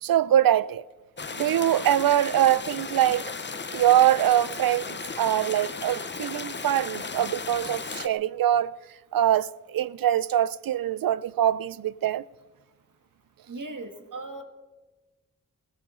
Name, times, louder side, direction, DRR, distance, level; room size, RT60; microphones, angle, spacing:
voice 1, 0.0-0.8 1.3-3.2 3.7-8.8 9.1-12.2, right 11 dB, 90° right, 0.5 m, -23 dB
sound 1, 1.2-8.1, left 4 dB, 35° left, 0.7 m, -35 dB
voice 2, 13.5-14.4, right 2 dB, 65° right, 1.8 m, -37 dB
20.0 x 16.5 x 3.7 m
wide cardioid pair, 70°, 34 cm